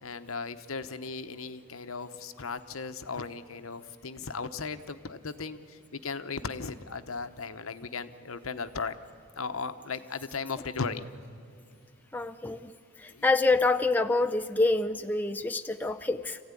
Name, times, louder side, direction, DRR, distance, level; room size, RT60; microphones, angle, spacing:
voice 1, 0.0-9.0 9.4-11.0 13.1-13.2 15.3-15.4, left 4 dB, 75° left, 10 dB, 1.0 m, -37 dB
voice 2, 12.1-12.7 13.0-16.4, left 3 dB, 10° left, 5 dB, 0.5 m, -26 dB
26.0 x 15.5 x 9.8 m, 2.2 s
head